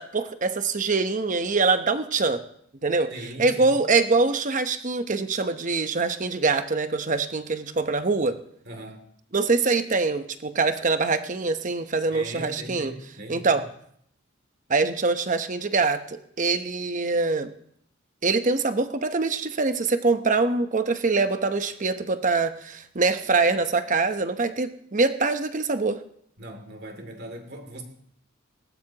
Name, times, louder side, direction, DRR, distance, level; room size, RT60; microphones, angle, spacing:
voice 1, 0.0-2.4 2.8-3.1 3.4-8.4 9.3-12.9 13.3-13.6 14.7-17.5 18.2-26.0, right 3 dB, 40° right, 9 dB, 0.9 m, -24 dB
voice 2, 3.1-3.8 8.6-9.0 12.1-13.6 26.4-27.8, right 1 dB, 55° right, 4 dB, 2.7 m, -39 dB
20.0 x 18.0 x 2.9 m, 0.67 s
head